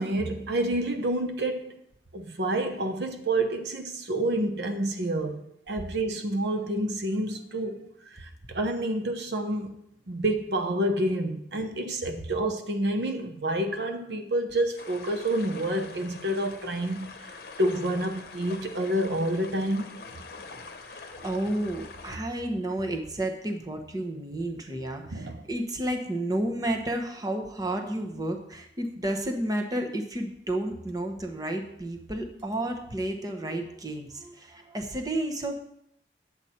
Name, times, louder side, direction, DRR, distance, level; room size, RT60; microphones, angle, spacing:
voice 1, 0.0-1.8 2.1-5.4 5.7-7.9 8.2-9.7 10.1-17.2 17.6-20.0 25.1-25.4, right 1 dB, 75° right, 0.8 m, -28 dB
sound 1, 14.8-22.2, left 4 dB, 60° left, 0.9 m, -44 dB
voice 2, 20.9-35.5, right 1 dB, 20° right, 1.0 m, -31 dB
9.6 x 8.0 x 4.3 m
head